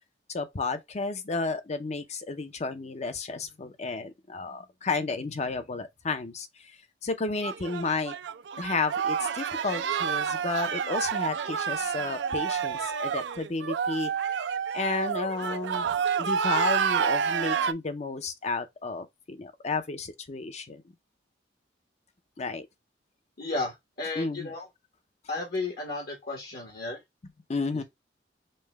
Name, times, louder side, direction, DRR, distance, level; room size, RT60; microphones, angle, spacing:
voice 1, 0.3-6.5 7.0-8.1 8.6-14.4 14.7-15.9 16.2-20.8 22.4-22.7 24.2-24.5 27.5-27.8, left 3 dB, 40° left, 0.6 m, -32 dB
sound 1, 7.4-17.7, right 7 dB, 75° right, 0.4 m, -29 dB
voice 2, 23.4-24.7 25.3-27.0 27.7-27.8, left 2 dB, 60° left, 1.2 m, -33 dB
5.3 x 2.2 x 3.3 m
head